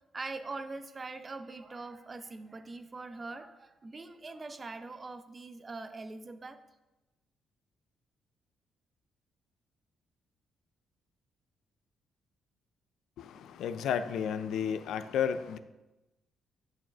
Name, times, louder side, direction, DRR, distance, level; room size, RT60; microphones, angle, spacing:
voice 1, 0.1-6.6, right 3 dB, 30° right, 0.5 m, -42 dB
voice 2, 13.2-15.6, left 8 dB, 80° left, 0.3 m, -32 dB
8.9 x 6.1 x 2.4 m
cardioid pair, 90°, 0 cm